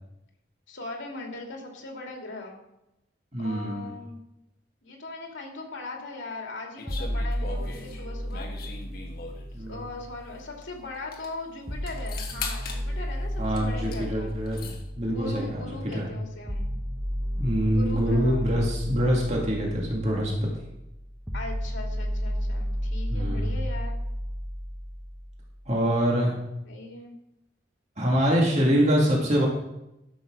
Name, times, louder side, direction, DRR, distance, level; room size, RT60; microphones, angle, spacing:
voice 1, 0.7-2.6 3.4-4.2 4.8-8.5 9.7-14.3 15.0-16.7 17.7-18.5 21.3-24.0 26.6-27.1, left 2 dB, 85° left, 1 dB, 2.7 m, -39 dB
voice 2, 3.3-3.9 9.5-9.8 13.4-15.6 15.9-16.1 17.4-20.5 23.1-23.5 25.7-26.4 28.0-29.5, equal, 35° right, -2 dB, 2.2 m, -25 dB
sound 1, 6.8-9.5 10.6-10.7 10.9-11.3 11.9-12.8 13.5-14.0 14.3-14.8, left 4 dB, 50° left, 1.4 m, -39 dB
sound 2, 6.9-10.9 11.7-25.7, equal, 5° right, 1.0 m, -33 dB
12.0 x 6.4 x 6.2 m, 0.89 s
head